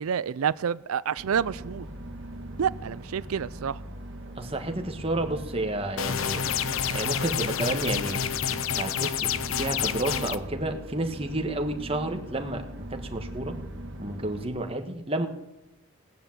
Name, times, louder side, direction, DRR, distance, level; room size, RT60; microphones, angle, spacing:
voice 1, 0.0-1.9 2.6-3.8, right 7 dB, 90° right, 18 dB, 0.4 m, -28 dB
sound 1, 1.2-14.5, right 1 dB, 55° right, 2.0 m, -40 dB
voice 2, 4.4-6.4 6.9-8.2 8.7-12.6 12.9-13.6 14.0-15.3, right 1 dB, 25° right, 5 dB, 1.5 m, -30 dB
sound 2, 6.0-10.4, left 8 dB, 75° left, 0.7 m, -28 dB
17.0 x 10.5 x 7.3 m, 0.93 s
head